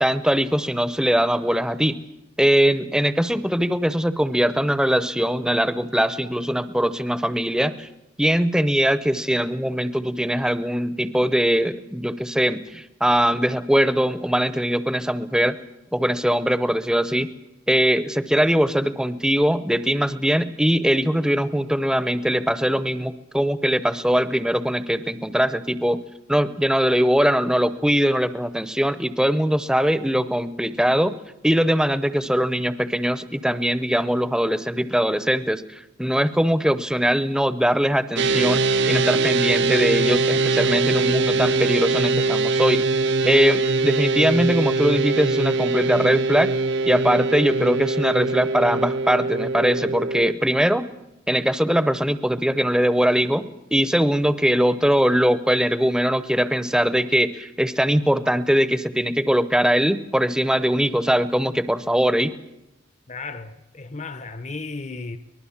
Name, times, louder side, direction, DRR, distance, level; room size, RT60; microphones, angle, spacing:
voice 1, 0.0-2.0 2.4-7.9 8.2-15.6 15.9-17.3 17.7-26.0 26.3-31.1 31.4-35.6 36.0-42.8 43.2-46.5 46.9-50.9 51.3-62.3, equal, 5° right, 0.7 m, -21 dB
sound 1, 38.2-50.3, right 3 dB, 55° right, 0.7 m, -22 dB
voice 2, 63.1-65.2, left 3 dB, 35° left, 0.8 m, -34 dB
24.0 x 19.5 x 7.2 m
head